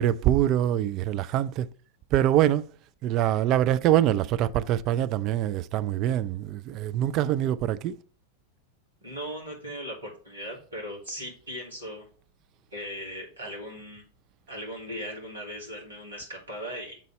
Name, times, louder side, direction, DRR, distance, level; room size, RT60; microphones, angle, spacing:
voice 1, 0.0-1.7 2.1-2.7 3.0-8.0, right 12 dB, 40° right, 0.4 m, -24 dB
voice 2, 9.0-12.0 12.7-14.0 14.5-17.0, equal, 75° right, 3.0 m, -38 dB
7.4 x 4.0 x 4.0 m
figure-of-eight pair, 90°, 0 cm